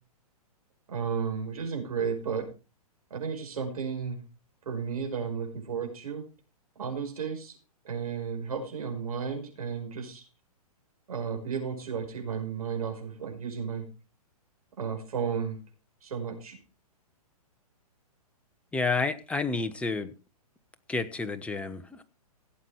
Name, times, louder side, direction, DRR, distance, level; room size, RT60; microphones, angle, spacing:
voice 1, 0.9-2.5 3.1-4.2 4.7-6.3 6.8-7.6 7.9-10.2 11.1-13.9 14.8-15.6 16.0-16.6, right 6 dB, 70° right, 3 dB, 5.2 m, -33 dB
voice 2, 18.7-20.1 20.9-22.0, left 3 dB, 5° left, 9 dB, 1.0 m, -30 dB
16.5 x 7.9 x 4.7 m, 0.32 s
hypercardioid pair, 125°, 20 cm